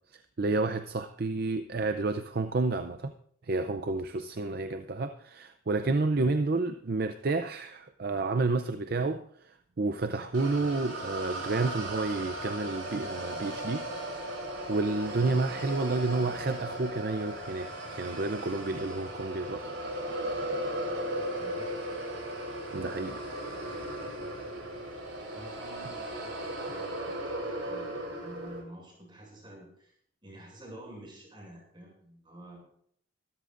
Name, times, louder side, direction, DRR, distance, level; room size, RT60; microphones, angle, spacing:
voice 1, 0.1-3.1 3.4-13.9 14.7-19.7 22.7-23.2, right 3 dB, 50° right, 0.5 m, -30 dB
sound 1, 10.3-28.6, right 1 dB, 85° right, 6.2 m, -37 dB
voice 2, 21.4-21.7 25.3-27.4 27.6-29.9 30.2-32.6, right 1 dB, 25° right, 6.7 m, -49 dB
24.0 x 13.0 x 2.5 m
head